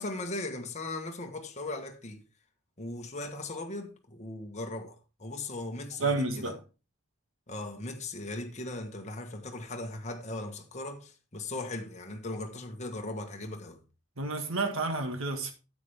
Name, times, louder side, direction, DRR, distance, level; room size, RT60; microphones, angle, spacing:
voice 1, 0.0-2.2 2.8-6.6 7.5-13.8, left 2 dB, 30° left, 1.3 m, -38 dB
voice 2, 6.0-6.6 14.2-15.5, right 3 dB, 65° right, 1.7 m, -30 dB
9.7 x 8.2 x 3.5 m
head